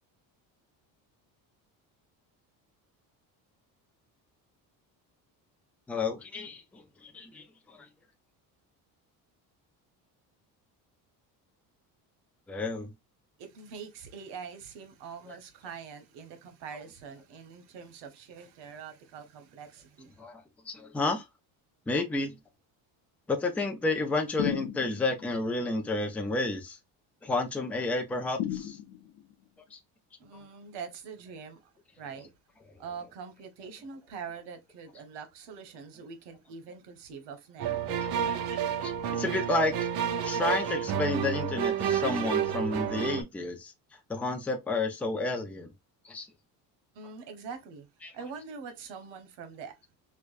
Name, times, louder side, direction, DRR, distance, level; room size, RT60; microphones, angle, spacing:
voice 1, 5.9-7.9 12.5-12.9 15.3-15.4 20.2-21.3 21.9-22.4 23.3-26.8 27.2-28.8 29.7-29.8 38.0-39.9 40.2-45.7 46.0-46.3 48.0-48.1, left 3 dB, 5° left, 0.3 m, -31 dB
voice 2, 13.4-20.2 30.2-31.7 32.0-32.3 32.8-37.9 46.9-47.9 48.1-49.8, right 6 dB, 90° right, 1.0 m, -44 dB
sound 1, 24.4-25.2 28.4-29.3, left 11 dB, 80° left, 0.8 m, -34 dB
sound 2, 37.6-43.2, right 8 dB, 65° right, 0.7 m, -30 dB
4.7 x 2.2 x 2.3 m
cardioid pair, 160°, 40 cm